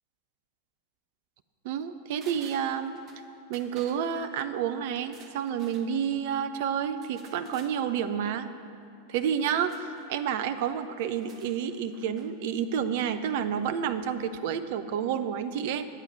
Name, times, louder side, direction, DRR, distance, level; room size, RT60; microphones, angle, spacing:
voice 1, 1.6-2.9 3.5-8.5 9.1-15.9, right 8 dB, 50° right, 10 dB, 0.5 m, -30 dB
sound 1, 2.2-3.2 3.5-4.0 5.0-5.9 7.0-7.8 9.7-10.1 11.1-12.3 12.6-12.7, right 4 dB, 30° right, 0.9 m, -53 dB
10.0 x 8.7 x 4.4 m, 2.5 s
figure-of-eight pair, 90°, 0 cm